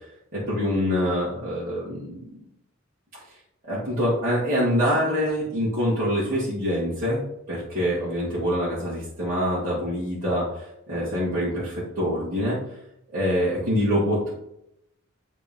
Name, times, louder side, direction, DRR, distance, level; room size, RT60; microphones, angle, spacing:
voice 1, 0.3-2.2 3.6-7.2 7.5-12.6 13.1-14.3, equal, 40° right, -10 dB, 2.2 m, -25 dB
10.0 x 3.7 x 3.7 m, 0.81 s
head